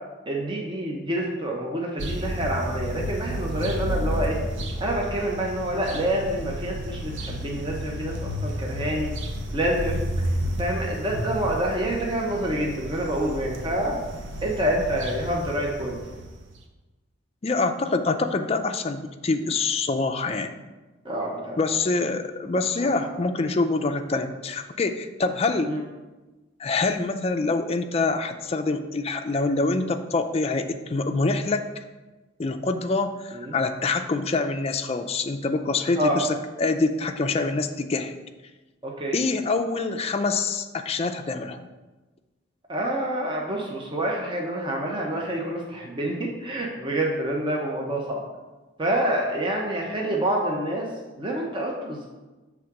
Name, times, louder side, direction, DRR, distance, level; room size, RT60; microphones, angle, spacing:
voice 1, 0.3-4.4 4.8-9.2 9.5-10.1 10.6-14.0 14.4-16.2 21.0-21.6 22.8-22.9 25.6-25.8 33.3-33.5 36.0-36.2 38.8-39.1 42.7-48.2 48.8-50.9 51.2-52.1, right 1 dB, 25° right, -1 dB, 0.8 m, -27 dB
sound 1, 2.0-16.6, equal, 80° right, 0.8 m, -31 dB
voice 2, 17.4-20.6 21.6-25.7 26.6-31.7 32.4-38.1 39.1-41.7, left 3 dB, 30° left, 7 dB, 0.4 m, -25 dB
6.3 x 3.5 x 5.8 m, 1.2 s
head